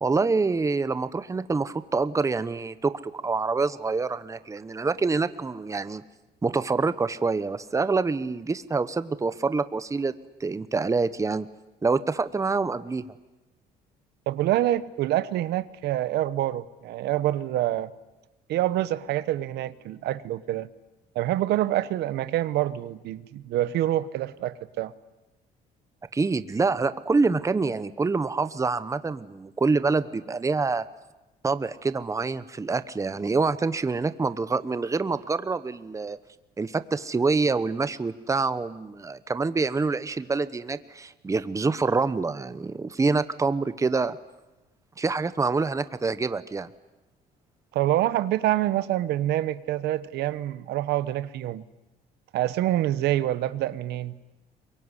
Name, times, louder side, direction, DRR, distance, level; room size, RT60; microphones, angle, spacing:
voice 1, 0.0-6.0 6.4-10.1 10.4-11.5 11.8-13.0 26.1-30.9 31.4-36.2 36.6-44.2 45.0-46.7, right 4 dB, 20° right, 13 dB, 1.0 m, -26 dB
voice 2, 14.3-17.9 18.5-20.7 21.1-24.9 47.7-51.6 52.3-54.2, right 13 dB, 75° right, 15 dB, 1.0 m, -26 dB
23.5 x 22.5 x 9.9 m, 1.0 s
cardioid pair, 110°, 17 cm